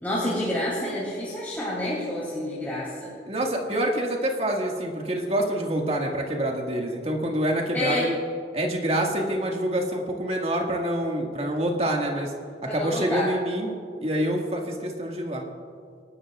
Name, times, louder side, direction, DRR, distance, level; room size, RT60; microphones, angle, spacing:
voice 1, 0.0-3.1 7.7-8.1 12.7-13.3, left 1 dB, 10° left, -8 dB, 2.9 m, -28 dB
voice 2, 3.3-8.2 8.5-12.3 12.7-13.7 14.0-15.5, right 1 dB, 35° right, 0 dB, 1.9 m, -26 dB
27.5 x 12.5 x 2.5 m, 2.4 s
head